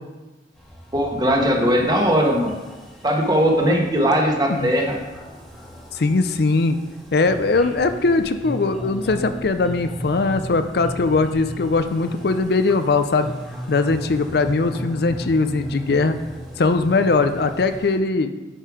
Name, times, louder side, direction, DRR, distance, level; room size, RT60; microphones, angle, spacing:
sound 1, 0.5-18.0, equal, ahead, 1.9 m, -37 dB
voice 1, 0.9-2.6 3.0-5.0, equal, 25° right, 0 dB, 1.4 m, -19 dB
voice 2, 5.9-6.8 7.1-13.3 13.7-16.2 16.6-18.3, left 3 dB, 60° left, 9 dB, 0.5 m, -20 dB
10.0 x 5.5 x 4.9 m, 1.1 s
head